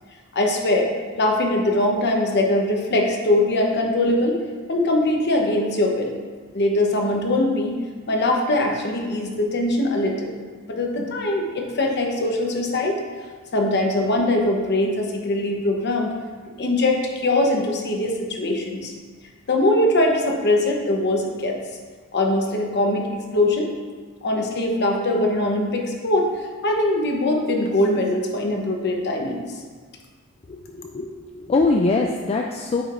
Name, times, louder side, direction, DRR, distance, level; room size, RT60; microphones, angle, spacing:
voice 1, 0.3-4.4 4.7-6.1 6.5-7.8 8.1-10.3 10.6-13.0 13.5-16.1 16.6-18.9 19.5-21.6 22.1-23.7 24.2-26.3 26.6-29.5, left 1 dB, 50° left, 1 dB, 0.9 m, -22 dB
voice 2, 30.5-32.8, left 3 dB, 30° left, 1 dB, 0.3 m, -23 dB
8.9 x 5.1 x 2.5 m, 1.5 s
head